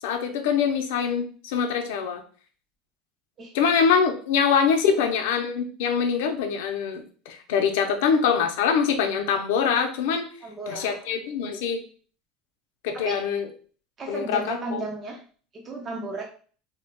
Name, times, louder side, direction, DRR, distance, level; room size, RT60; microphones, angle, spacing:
voice 1, 0.0-2.2 3.5-10.3 10.7-11.8 12.8-13.5 14.1-14.8, left 6 dB, 75° left, 5 dB, 0.6 m, -24 dB
voice 2, 10.4-11.1 12.9-13.2 14.0-15.2 15.5-16.2, right 2 dB, 20° right, 0 dB, 0.4 m, -34 dB
4.9 x 2.3 x 2.2 m, 0.42 s
cardioid pair, 180°, 0 cm